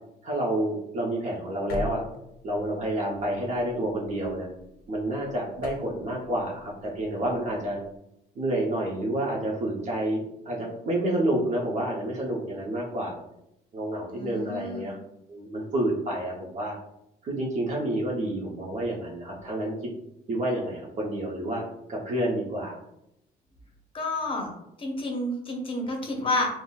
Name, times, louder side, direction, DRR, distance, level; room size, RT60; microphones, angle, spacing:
voice 1, 0.2-2.0 2.4-4.5 4.9-7.8 8.4-13.1 13.7-15.0 15.3-16.8 17.2-19.7 20.3-21.6 21.9-22.8, right 1 dB, 45° right, -2 dB, 0.8 m, -29 dB
sound 1, 1.7-8.0, left 2 dB, 60° left, 0.4 m, -42 dB
voice 2, 14.1-14.9 23.9-24.5 24.8-26.5, left 2 dB, 30° left, 1 dB, 0.8 m, -30 dB
3.7 x 2.1 x 2.3 m, 0.80 s
cardioid pair, 110°, 17 cm